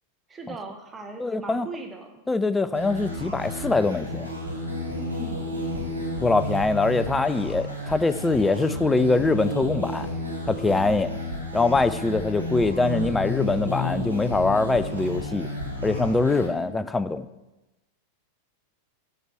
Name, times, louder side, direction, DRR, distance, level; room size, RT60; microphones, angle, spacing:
voice 1, 0.3-2.2 4.9-5.5 16.4-16.9, right 3 dB, 15° right, 4 dB, 0.9 m, -39 dB
voice 2, 1.2-1.7 2.3-4.3 6.2-10.1 10.5-11.1 11.5-15.5 15.8-17.3, left 3 dB, 10° left, 13 dB, 0.4 m, -23 dB
sound 1, 2.7-16.5, left 1 dB, 85° right, 1.5 m, -31 dB
8.0 x 4.7 x 5.7 m, 1.0 s
figure-of-eight pair, 90°, 0 cm